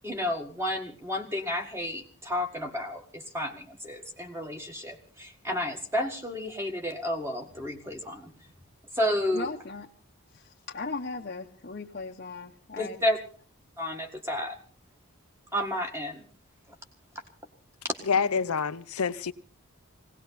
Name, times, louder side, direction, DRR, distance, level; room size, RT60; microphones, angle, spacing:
voice 1, 0.0-8.3 8.9-9.5 12.8-13.2 13.8-14.6 15.5-16.2 18.0-18.1, left 1 dB, 10° right, 1.8 m, -31 dB
voice 2, 9.3-9.9 10.7-13.0, left 3 dB, 45° left, 0.9 m, -37 dB
voice 3, 18.1-19.3, left 6 dB, 85° left, 0.7 m, -27 dB
19.0 x 17.5 x 4.1 m
head